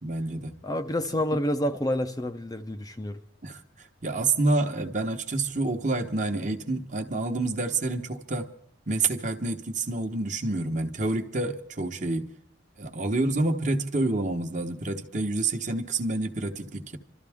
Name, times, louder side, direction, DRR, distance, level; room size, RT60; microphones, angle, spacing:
voice 1, 0.0-0.6 3.4-8.5 8.9-12.3 12.8-17.0, right 2 dB, 40° right, 1.2 m, -28 dB
voice 2, 0.6-3.2, left 1 dB, 20° left, 0.6 m, -28 dB
26.5 x 13.0 x 3.6 m
head